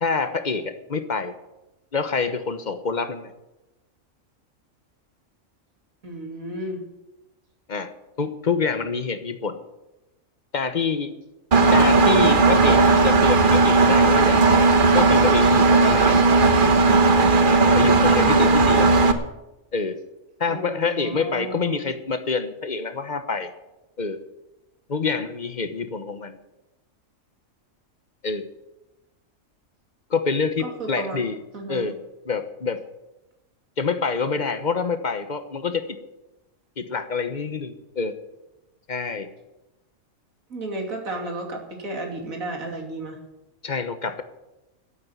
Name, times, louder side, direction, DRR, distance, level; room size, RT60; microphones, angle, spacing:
voice 1, 0.0-1.3 1.9-3.3 7.7-7.9 8.2-9.6 10.5-11.1 11.7-16.2 17.7-19.0 19.7-20.0 20.4-23.5 24.0-24.2 24.9-26.4 28.2-28.4 30.1-31.4 31.7-31.9 32.2-32.8 33.8-35.8 36.8-38.1 38.9-39.3 43.6-44.2, left 5 dB, 35° left, 10 dB, 1.2 m, -26 dB
voice 2, 6.0-6.8 18.1-18.6 20.5-21.9 30.6-31.2 31.5-31.9 40.5-43.2, right 1 dB, 90° right, 2 dB, 3.2 m, -32 dB
Engine, 11.5-19.1, right 3 dB, 40° right, 1.2 m, -16 dB
12.5 x 8.7 x 9.8 m, 0.99 s
omnidirectional pair, 1.4 m